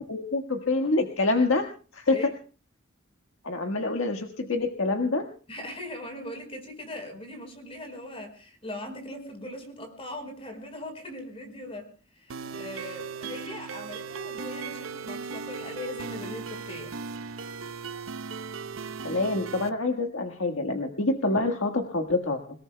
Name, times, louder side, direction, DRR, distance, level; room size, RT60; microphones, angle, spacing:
voice 1, 0.0-1.7 1.9-2.3 3.4-5.3 19.0-22.6, left 2 dB, 85° left, 4 dB, 1.6 m, -26 dB
voice 2, 5.5-17.0, left 1 dB, 30° left, 5 dB, 4.6 m, -40 dB
sound 1, 12.3-19.7, right 5 dB, 80° right, 0.7 m, -37 dB
28.0 x 18.5 x 2.3 m, 0.39 s
head